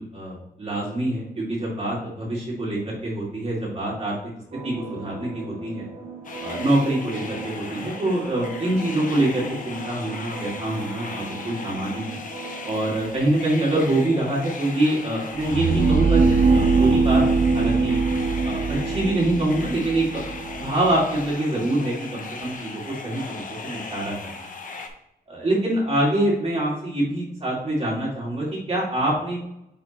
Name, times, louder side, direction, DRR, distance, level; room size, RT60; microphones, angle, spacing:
voice 1, 0.0-4.3 4.6-5.9 6.4-12.2 12.6-18.0 18.4-20.3 20.6-24.1 25.3-29.4, right 1 dB, 40° right, -5 dB, 2.5 m, -25 dB
sound 1, 4.5-12.8, right 3 dB, 85° right, 1.6 m, -38 dB
sound 2, 6.2-24.9, left 4 dB, 55° left, 1.0 m, -37 dB
sound 3, 15.3-21.3, right 4 dB, 65° right, 0.5 m, -21 dB
9.4 x 4.2 x 3.0 m, 0.81 s
wide cardioid pair, 100°, 16 cm